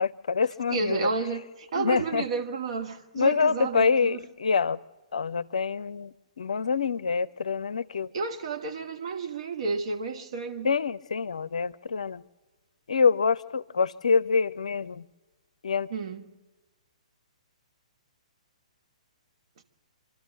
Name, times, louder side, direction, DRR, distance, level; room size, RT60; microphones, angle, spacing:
voice 1, 0.0-1.1 1.8-2.2 3.1-4.8 5.1-8.1 10.6-12.2 12.9-15.0 15.6-15.9, left 5 dB, 65° left, 0.5 m, -26 dB
voice 2, 0.7-4.2 8.1-10.7 15.9-16.2, right 4 dB, 50° right, 1.4 m, -31 dB
27.0 x 12.5 x 7.6 m
figure-of-eight pair, 120°, 4 cm